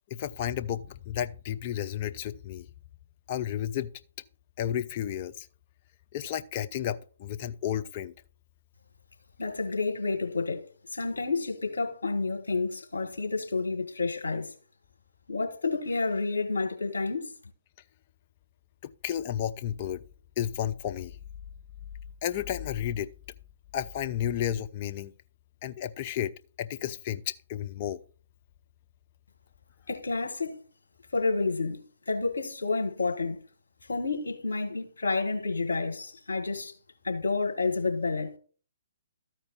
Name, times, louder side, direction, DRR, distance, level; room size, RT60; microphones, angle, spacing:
voice 1, 0.1-2.7 3.3-3.9 4.6-5.5 6.1-8.1 18.8-20.0 20.4-21.2 22.2-23.1 23.7-25.1 25.6-28.0, left 10 dB, 35° left, 0.5 m, -32 dB
voice 2, 9.4-10.6 10.9-14.5 15.3-17.3 29.9-30.6 31.1-33.4 33.9-36.7 37.0-38.4, left 3 dB, 70° left, 1.9 m, -30 dB
13.5 x 4.6 x 4.4 m
figure-of-eight pair, 130°, 0 cm